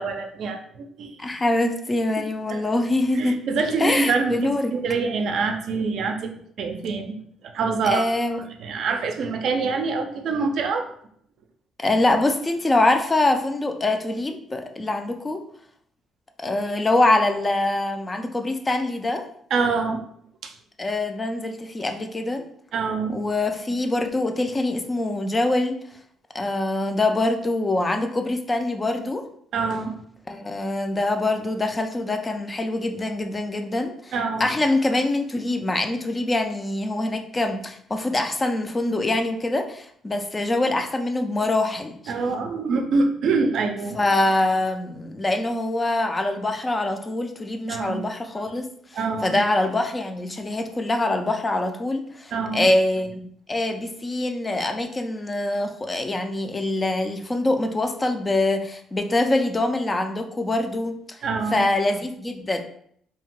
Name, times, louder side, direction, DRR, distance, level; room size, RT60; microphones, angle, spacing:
voice 1, 0.0-1.2 2.5-2.6 3.2-7.2 7.5-8.1 8.6-10.9 19.5-20.0 20.4-20.5 22.7-23.2 29.5-30.0 34.1-34.5 42.1-44.0 47.7-48.0 48.9-49.4 52.3-52.7 61.2-61.7, right 4 dB, 65° right, 5 dB, 0.4 m, -25 dB
voice 2, 1.2-3.4 3.8-4.7 7.8-8.4 11.8-15.4 16.4-19.2 20.8-22.4 23.1-25.8 26.3-29.2 30.3-34.1 34.4-42.1 43.9-48.7 49.2-61.2 61.5-62.6, left 2 dB, 20° left, 6 dB, 0.3 m, -24 dB
2.7 x 2.1 x 3.0 m, 0.66 s
cardioid pair, 100°, 0 cm